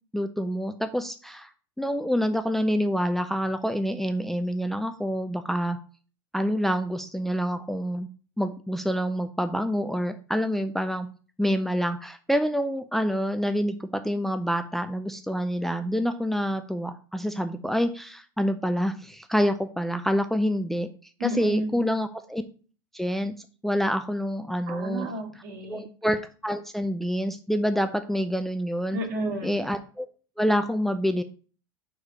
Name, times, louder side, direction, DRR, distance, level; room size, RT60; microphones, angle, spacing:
voice 1, 0.1-1.5 1.8-5.8 6.3-8.1 8.4-11.1 11.4-20.9 21.2-22.4 22.9-23.3 23.6-25.1 25.7-29.0 29.4-30.1 30.4-31.2, equal, ahead, 8 dB, 0.5 m, -27 dB
voice 2, 21.2-21.8 24.7-25.8 28.9-29.5, right 1 dB, 65° right, -2 dB, 2.7 m, -31 dB
4.8 x 4.7 x 5.4 m, 0.39 s
hypercardioid pair, 90°, 12 cm